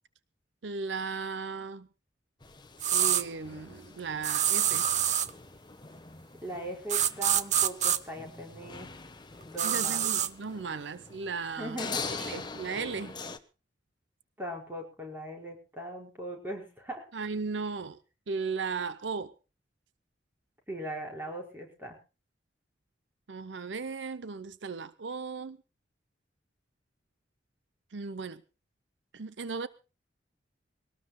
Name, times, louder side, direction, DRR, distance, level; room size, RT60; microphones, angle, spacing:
voice 1, 0.6-1.9 2.9-4.8 9.6-13.2 17.1-18.0 18.3-19.3 23.3-25.6 27.9-28.4 29.1-29.7, right 4 dB, 80° right, 0.7 m, -36 dB
sound 1, 2.4-13.4, left 4 dB, 25° left, 1.1 m, -43 dB
sound 2, 2.8-3.2 4.2-5.3 6.9-8.0 9.6-10.3, right 10 dB, 40° right, 0.7 m, -26 dB
voice 2, 6.4-8.9 9.4-10.1 11.6-12.3 14.4-17.1 20.7-21.9, right 1 dB, 10° right, 5.0 m, -40 dB
23.0 x 18.5 x 2.2 m
head